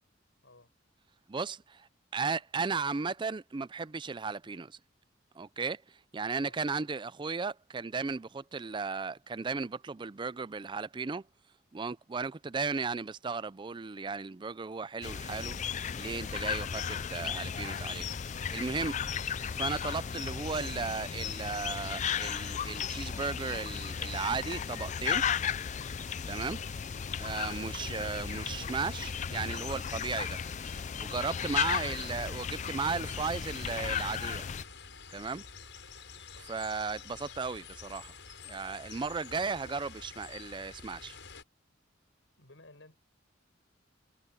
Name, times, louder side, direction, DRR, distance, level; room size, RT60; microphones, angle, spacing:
voice 1, 1.3-4.8 5.4-5.8 6.1-11.2 11.7-15.6 16.0-18.1 18.5-18.9 19.2-25.2 26.2-26.6 27.2-30.4 31.0-34.5 35.1-35.4 36.5-38.1 38.4-41.2, right 4 dB, 25° right, 0.4 m, -35 dB
sound 1, 15.0-34.6, left 7 dB, 40° left, 0.4 m, -35 dB
sound 2, 15.5-31.0, right 10 dB, 85° right, 4.8 m, -58 dB
sound 3, 31.4-41.4, left 5 dB, 70° left, 7.6 m, -49 dB
voice 2, 42.4-43.0, left 2 dB, 85° left, 5.9 m, -57 dB
head